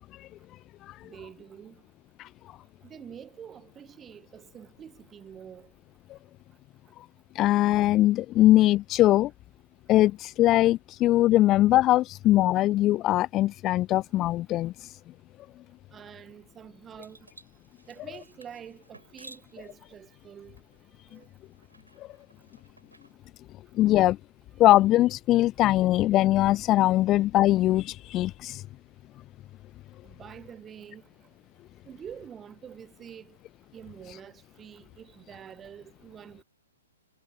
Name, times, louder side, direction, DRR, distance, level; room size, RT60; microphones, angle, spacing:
voice 1, 1.0-1.8 2.8-5.7 15.9-17.3 17.9-20.6 21.1-21.3 30.0-31.0 31.8-33.4 33.7-36.4, right 8 dB, 15° right, 1.4 m, -46 dB
voice 2, 7.4-9.3 9.9-14.9 23.7-24.2 24.6-28.6, left 15 dB, 25° left, 0.3 m, -21 dB
sound 1, 17.0-23.1, right 2 dB, 85° right, 7.8 m, -55 dB
figure-of-eight pair, 120°, 0 cm